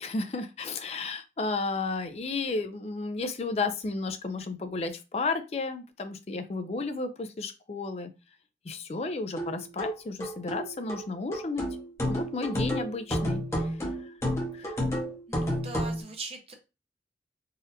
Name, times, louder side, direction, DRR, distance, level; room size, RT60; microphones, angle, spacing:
voice 1, 0.0-8.1 8.6-11.7 12.1-13.8 14.0-14.1 14.5-14.8, left 3 dB, 35° left, 8 dB, 0.4 m, -33 dB
sound 1, 9.4-16.0, equal, 15° left, 0.8 m, -31 dB
voice 2, 15.3-16.5, right 2 dB, 35° right, 3 dB, 0.7 m, -40 dB
4.0 x 2.5 x 2.6 m, 0.28 s
head